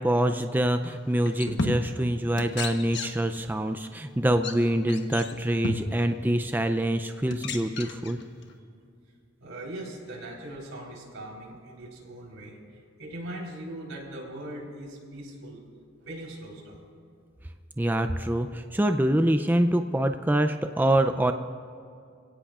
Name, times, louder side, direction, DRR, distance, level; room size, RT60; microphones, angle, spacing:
voice 1, 0.0-8.2 17.8-21.3, right 1 dB, 10° right, 7 dB, 0.4 m, -25 dB
Kitchen cabinet door squeak and slam, 0.8-0.9 1.3-2.1 2.4-3.4 3.7-3.9 4.3-4.5 4.9-6.1 6.8-6.9 7.3-8.6, left 2 dB, 60° left, 1.2 m, -33 dB
voice 2, 9.4-15.6 16.0-16.9, right 1 dB, 85° right, -2 dB, 4.0 m, -40 dB
28.0 x 17.0 x 2.5 m, 2.4 s
head